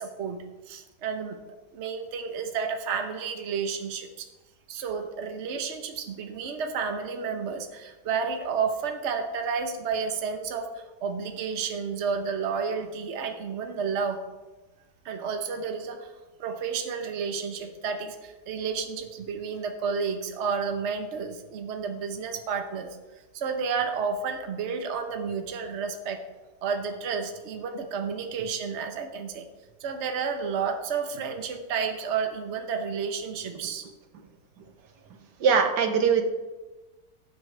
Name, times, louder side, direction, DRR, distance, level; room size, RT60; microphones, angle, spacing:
voice 1, 0.0-1.4 1.7-4.3 4.7-14.2 15.0-16.1 16.4-23.0 23.3-26.2 26.6-29.5 29.8-33.9, right 5 dB, 50° right, 6 dB, 1.2 m, -31 dB
voice 2, 35.4-36.3, right 6 dB, 85° right, 5 dB, 1.7 m, -22 dB
17.5 x 7.6 x 3.4 m, 1.2 s
omnidirectional pair, 1.7 m